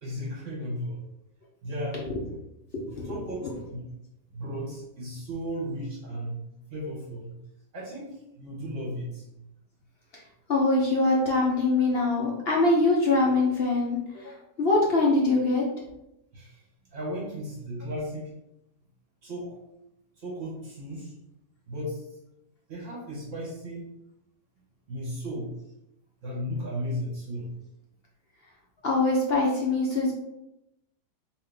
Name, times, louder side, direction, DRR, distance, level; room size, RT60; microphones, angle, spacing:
voice 1, 0.0-1.0 1.6-2.1 3.0-3.9 4.3-7.4 7.7-9.4 16.3-16.6 16.9-18.3 19.2-19.6 20.2-21.1 21.7-22.1 22.7-23.8 24.9-25.6 26.2-27.5, equal, 50° right, -4 dB, 1.2 m, -35 dB
voice 2, 2.7-3.1 3.4-3.5 10.5-15.6 28.8-30.1, left 2 dB, 55° left, -3 dB, 0.7 m, -23 dB
3.8 x 2.9 x 3.3 m, 0.85 s
omnidirectional pair, 1.8 m